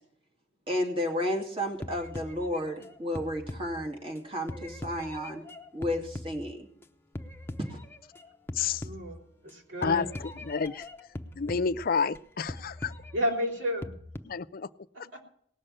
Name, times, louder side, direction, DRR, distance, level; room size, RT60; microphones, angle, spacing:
voice 1, 0.7-5.4 5.7-6.7 7.6-7.8, left 1 dB, 30° right, 2 dB, 2.6 m, -32 dB
sound 1, 1.8-4.2 4.5-6.8 7.2-8.2 8.5-9.5 9.8-12.2 12.5-14.2, left 1 dB, 10° left, 0.8 m, -42 dB
voice 2, 8.8-9.2 9.4-10.1 13.1-13.9 15.1-15.2, equal, 90° right, 1 dB, 4.1 m, -31 dB
voice 3, 9.8-10.9 11.4-12.9 14.2-14.7, left 5 dB, 50° left, 13 dB, 0.5 m, -30 dB
18.5 x 6.6 x 8.8 m, 0.65 s
head